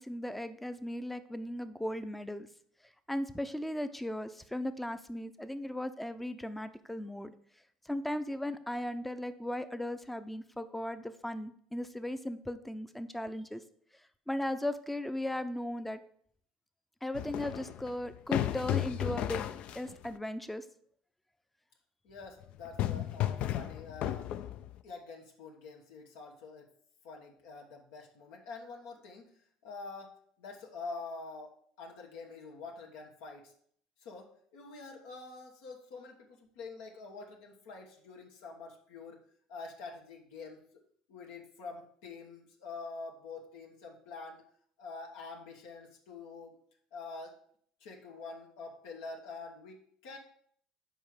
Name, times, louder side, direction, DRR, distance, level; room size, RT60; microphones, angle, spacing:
voice 1, 0.0-2.5 3.1-7.3 7.8-13.6 14.3-16.0 17.0-19.5 19.7-20.6, left 1 dB, 5° left, 12 dB, 0.6 m, -37 dB
sound 1, 17.1-20.1 22.4-24.8, left 12 dB, 60° left, 0.4 m, -34 dB
voice 2, 22.0-24.3 24.8-26.7 27.0-29.3 29.6-33.5 34.0-39.2 39.5-40.6 41.1-44.4 44.8-46.6 46.9-47.4 47.8-50.2, left 4 dB, 80° left, 1 dB, 1.2 m, -46 dB
5.5 x 4.7 x 6.4 m, 0.62 s
supercardioid pair, 90°, 2 cm